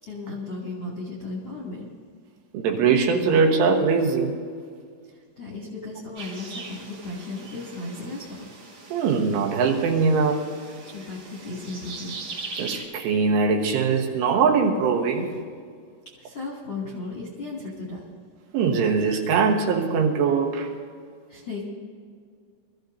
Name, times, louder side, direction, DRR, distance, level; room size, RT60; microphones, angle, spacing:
voice 1, 0.0-1.9 5.1-8.5 10.9-12.2 16.2-18.0 21.3-21.6, left 3 dB, 40° left, -4 dB, 1.7 m, -35 dB
voice 2, 2.5-4.4 8.9-10.5 12.6-15.4 18.5-20.7, right 5 dB, 80° right, 1 dB, 3.7 m, -21 dB
sound 1, 6.2-12.9, right 3 dB, 45° right, 2.5 m, -40 dB
23.5 x 14.5 x 2.7 m, 2.1 s
omnidirectional pair, 5.8 m